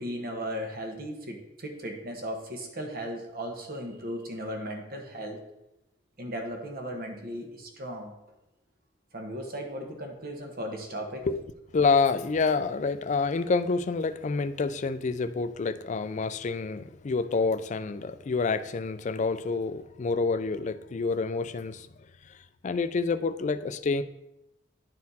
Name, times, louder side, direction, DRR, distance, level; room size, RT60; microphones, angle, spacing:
voice 1, 0.0-5.4 6.2-8.1 9.1-11.3, equal, 55° right, 3 dB, 1.3 m, -36 dB
voice 2, 11.7-21.9 22.6-24.0, left 4 dB, 40° left, 12 dB, 0.4 m, -28 dB
10.5 x 4.2 x 4.1 m, 0.90 s
head